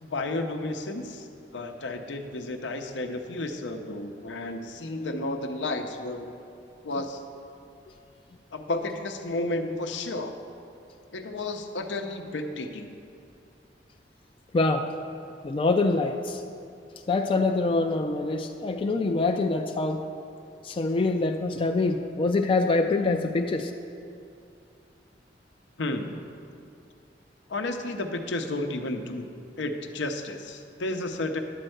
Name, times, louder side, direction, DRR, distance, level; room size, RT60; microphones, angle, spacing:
voice 1, 0.0-1.3 1.5-6.3 6.8-7.2 8.5-10.3 11.1-12.9 25.8-26.2 27.5-29.3 29.6-31.4, left 2 dB, 90° left, 6 dB, 0.7 m, -32 dB
voice 2, 14.5-14.9 15.4-16.4 17.1-20.0 20.6-23.7, left 3 dB, 30° left, 4 dB, 0.3 m, -25 dB
11.0 x 4.4 x 7.8 m, 2.5 s
head